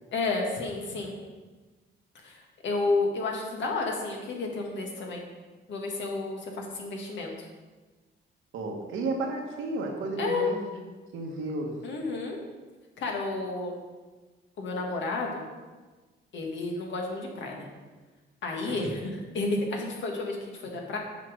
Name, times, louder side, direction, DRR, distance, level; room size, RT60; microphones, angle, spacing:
voice 1, 0.1-1.1 2.2-5.2 5.7-7.3 10.2-10.5 11.8-12.4 13.0-13.8 14.6-15.4 16.3-17.7 18.4-21.0, left 3 dB, 65° left, 0 dB, 1.7 m, -31 dB
voice 2, 8.5-10.7 11.1-11.7 18.6-18.9, right 2 dB, 85° right, 1 dB, 1.4 m, -33 dB
7.5 x 5.2 x 5.1 m, 1.3 s
cardioid pair, 90°, 20 cm